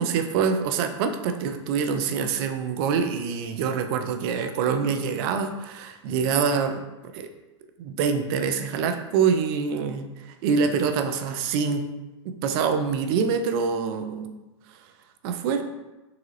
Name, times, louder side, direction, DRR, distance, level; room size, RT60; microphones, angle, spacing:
voice 1, 0.0-6.8 7.1-7.3 7.8-11.8 12.2-14.4 15.2-15.6, right 6 dB, 50° right, 8 dB, 0.5 m, -25 dB
3.8 x 3.7 x 3.2 m, 1.1 s
hypercardioid pair, 110°, 16 cm